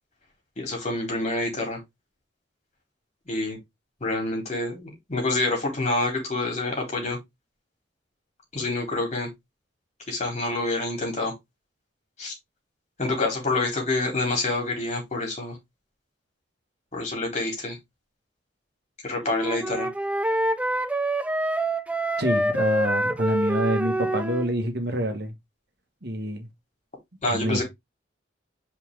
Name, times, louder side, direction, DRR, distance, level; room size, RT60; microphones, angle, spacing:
voice 1, 0.6-1.8 3.3-3.6 4.0-7.2 8.5-9.3 10.1-11.3 12.2-12.3 13.0-15.6 16.9-17.8 19.0-19.9 27.2-27.6, left 2 dB, 40° left, 3.7 m, -27 dB
Wind instrument woodwind instrument, 19.2-24.5, right 1 dB, 5° right, 0.5 m, -26 dB
voice 2, 22.2-25.3 26.0-26.5 27.3-27.6, right 1 dB, 60° right, 1.7 m, -27 dB
5.6 x 4.9 x 3.7 m
head